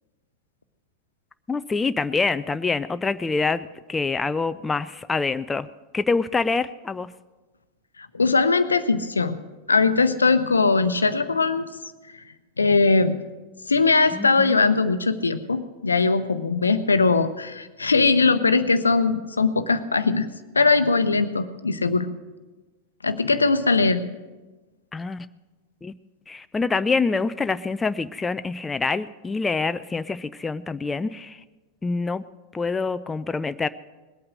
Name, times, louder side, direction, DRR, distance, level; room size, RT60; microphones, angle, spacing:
voice 1, 1.5-5.7 5.9-7.1 14.1-14.6 24.9-25.3 25.8-25.9 26.3-31.4 31.8-32.2 32.5-33.7, left 4 dB, 15° left, 13 dB, 0.4 m, -26 dB
voice 2, 8.1-9.4 9.7-11.7 12.6-13.1 13.7-20.3 20.5-22.1 23.0-24.0, left 4 dB, 75° left, 11 dB, 0.7 m, -20 dB
19.5 x 8.6 x 6.3 m, 1.2 s
figure-of-eight pair, 90°, 0 cm